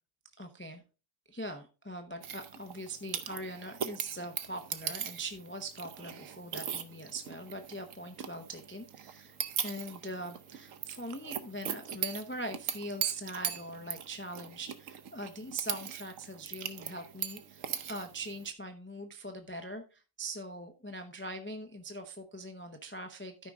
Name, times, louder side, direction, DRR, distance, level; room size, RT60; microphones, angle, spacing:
voice 1, 0.4-0.8 1.3-23.5, right 1 dB, 10° left, 5 dB, 0.6 m, -42 dB
sound 1, 2.2-18.5, right 8 dB, 80° right, 1.2 m, -40 dB
13.0 x 5.1 x 3.5 m, 0.33 s
omnidirectional pair, 1.4 m